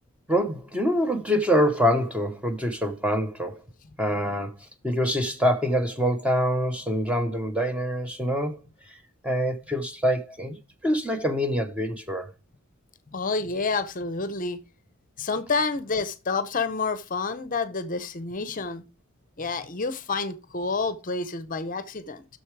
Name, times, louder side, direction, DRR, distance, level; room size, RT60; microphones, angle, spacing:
voice 1, 0.3-3.6 4.0-4.5 4.8-8.6 8.9-9.0 9.2-10.6 10.8-12.3, equal, 5° right, 0.7 m, -25 dB
voice 2, 13.1-14.6 15.2-18.8 19.4-22.3, left 4 dB, 35° left, 0.6 m, -29 dB
6.8 x 6.5 x 4.6 m
head